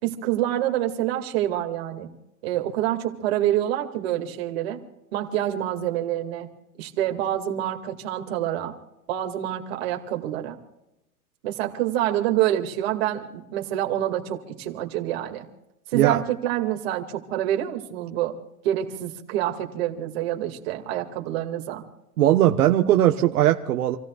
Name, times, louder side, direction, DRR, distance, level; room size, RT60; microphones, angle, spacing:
voice 1, 0.0-2.1 2.4-4.8 5.1-6.5 6.8-8.7 9.1-10.6 11.4-15.5 15.9-18.4 18.6-21.8, right 12 dB, 40° right, 3 dB, 2.2 m, -27 dB
voice 2, 22.2-24.0, right 12 dB, 75° right, 3 dB, 1.2 m, -19 dB
28.5 x 16.5 x 2.4 m, 0.91 s
supercardioid pair, 175°, 45 cm